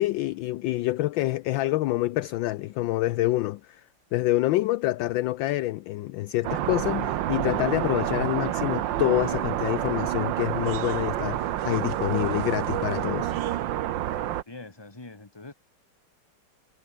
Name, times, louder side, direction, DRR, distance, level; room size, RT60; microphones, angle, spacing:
voice 1, 0.0-3.8 4.1-13.3, left 16 dB, 75° left, 1.2 m, -27 dB
sound 1, 6.4-14.4, right 12 dB, 65° right, 1.4 m, -28 dB
voice 2, 14.1-15.5, left 2 dB, 10° left, 2.0 m, -44 dB
omnidirectional pair, 2.4 m